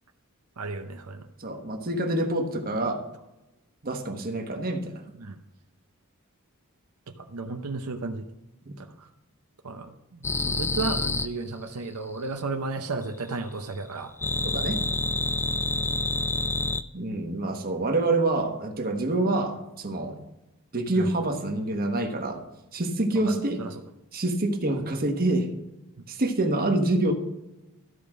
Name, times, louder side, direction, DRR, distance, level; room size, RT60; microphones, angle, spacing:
voice 1, 0.6-1.3 5.2-5.4 7.2-8.3 8.8-9.1 9.6-14.1 20.9-21.0 23.3-23.7, right 3 dB, 80° right, 6 dB, 0.7 m, -34 dB
voice 2, 1.4-3.0 3.8-4.9 14.4-14.8 16.9-20.2 20.7-22.4 22.7-23.6 24.1-25.5 26.1-27.1, right 2 dB, 40° right, 4 dB, 1.3 m, -26 dB
sound 1, 10.2-11.3 14.2-16.8, left 3 dB, 10° left, 0.3 m, -27 dB
13.0 x 5.1 x 6.1 m, 1.0 s
head